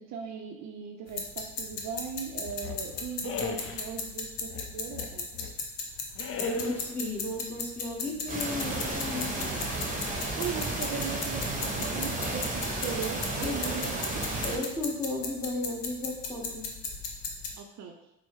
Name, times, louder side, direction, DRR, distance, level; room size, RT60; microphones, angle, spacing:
voice 1, 0.1-5.3 10.3-14.2 17.6-17.9, right 7 dB, 60° right, 3 dB, 0.5 m, -38 dB
sound 1, 1.1-17.5, left 4 dB, 80° left, 0.7 m, -37 dB
sound 2, 2.5-3.9 4.5-5.6 6.2-7.0, left 7 dB, 45° left, 0.4 m, -38 dB
voice 2, 6.4-9.5 13.4-13.9 14.4-16.7, left 2 dB, 5° left, -5 dB, 1.2 m, -34 dB
sound 3, 8.3-14.6, right 2 dB, 25° right, 1.0 m, -33 dB
4.4 x 2.0 x 3.0 m, 0.87 s
supercardioid pair, 70°, 32 cm